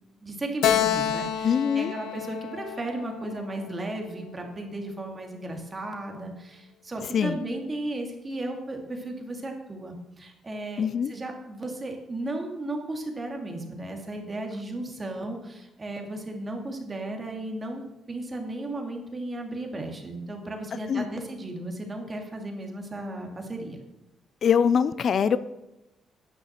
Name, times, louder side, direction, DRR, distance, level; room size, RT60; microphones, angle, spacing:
voice 1, 0.2-23.8, right 2 dB, 30° right, 2 dB, 2.4 m, -35 dB
Keyboard (musical), 0.6-4.1, left 10 dB, 90° left, 0.7 m, -29 dB
voice 2, 1.4-1.9 7.1-7.4 10.8-11.1 20.9-21.1 24.4-25.4, left 7 dB, 55° left, 15 dB, 0.5 m, -23 dB
10.0 x 6.4 x 7.4 m, 0.94 s
cardioid pair, 90°, 0 cm